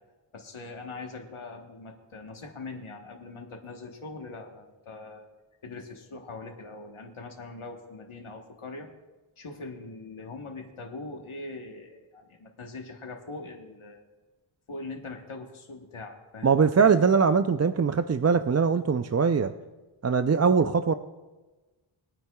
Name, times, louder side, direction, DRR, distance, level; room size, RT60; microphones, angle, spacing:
voice 1, 0.3-5.3 5.6-8.9 9.4-14.0 14.7-16.6, left 3 dB, 85° left, 2 dB, 1.3 m, -42 dB
voice 2, 16.4-19.5 20.0-20.9, right 5 dB, 35° right, 9 dB, 0.4 m, -22 dB
22.0 x 9.4 x 2.3 m, 1.2 s
wide cardioid pair, 50°, 48 cm